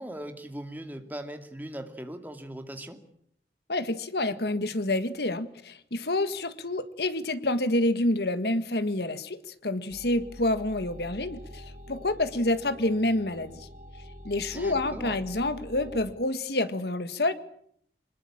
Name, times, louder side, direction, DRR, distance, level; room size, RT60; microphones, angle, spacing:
voice 1, 0.0-3.0 14.5-15.2, right 1 dB, 10° right, 6 dB, 2.4 m, -39 dB
voice 2, 3.7-13.7 14.3-17.3, left 1 dB, 70° left, 12 dB, 1.7 m, -28 dB
sound 1, 9.9-16.1, equal, 45° right, 2.3 m, -46 dB
25.0 x 21.0 x 8.7 m, 0.70 s
head